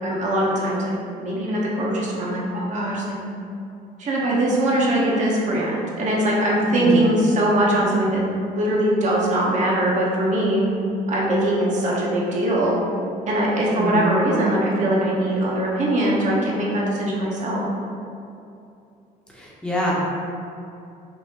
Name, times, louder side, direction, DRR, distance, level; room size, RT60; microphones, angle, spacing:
voice 1, 0.0-0.8 1.2-3.0 4.0-8.2 8.5-10.6 11.1-12.8 13.3-17.7, right 1 dB, 45° right, -4 dB, 0.9 m, -21 dB
voice 2, 6.7-7.1 13.7-14.2 19.3-19.9, equal, 5° left, -5 dB, 0.9 m, -25 dB
5.3 x 2.6 x 2.9 m, 2.6 s
cardioid pair, 110°, 17 cm